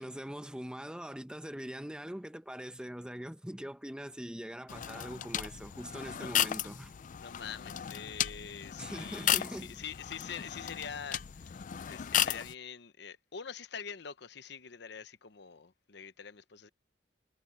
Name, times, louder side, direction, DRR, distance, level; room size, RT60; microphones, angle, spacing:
voice 1, 0.0-6.9 8.8-9.8, equal, 5° right, 0.8 m, -42 dB
sound 1, 4.7-12.5, left 10 dB, 45° left, 0.4 m, -35 dB
voice 2, 7.2-16.7, left 7 dB, 65° left, 1.0 m, -45 dB
head